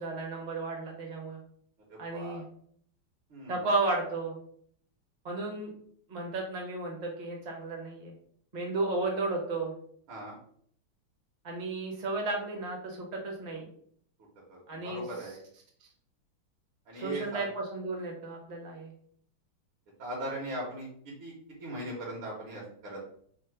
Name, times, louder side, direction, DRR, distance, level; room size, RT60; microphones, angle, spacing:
voice 1, 0.0-1.4 2.0-2.4 3.5-4.4 5.2-5.7 6.1-8.1 8.5-9.7 11.4-13.7 14.7-15.3 16.9-18.9, right 3 dB, 40° right, 0 dB, 0.6 m, -33 dB
voice 2, 1.9-2.4 3.3-3.6 10.1-10.4 14.5-15.4 16.9-17.4 20.0-20.9 21.2-21.3 21.6-23.1, right 1 dB, 75° right, -4 dB, 1.9 m, -39 dB
4.2 x 2.1 x 4.4 m, 0.62 s
omnidirectional pair, 2.3 m